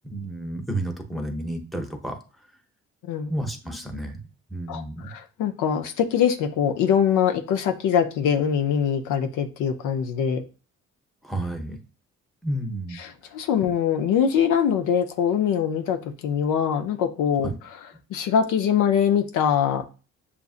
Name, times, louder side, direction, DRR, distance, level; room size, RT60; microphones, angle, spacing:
voice 1, 0.0-2.2 3.3-4.2 4.5-5.1 11.2-11.8 12.4-13.0 17.4-17.5, right 1 dB, ahead, 0.8 m, -31 dB
voice 2, 4.7-10.4 13.0-17.5 18.1-19.8, left 8 dB, 85° left, 0.6 m, -23 dB
7.0 x 2.5 x 2.4 m
cardioid pair, 90°, 30 cm